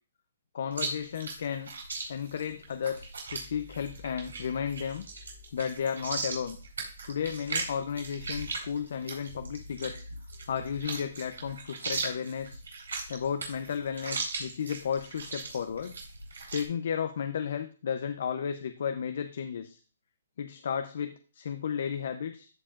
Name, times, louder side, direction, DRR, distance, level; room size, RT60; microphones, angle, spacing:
voice 1, 0.5-1.7 2.1-5.1 5.5-6.6 7.0-10.1 10.5-12.6 13.1-15.9 16.5-19.8 20.4-22.5, left 7 dB, 60° left, 7 dB, 0.6 m, -33 dB
Chewing mastication, 0.7-16.7, right 3 dB, 85° right, 4.3 m, -38 dB
sound 1, 3.1-10.8, equal, 60° right, 3.7 m, -52 dB
14.5 x 4.8 x 2.5 m, 0.36 s
hypercardioid pair, 160°, 0 cm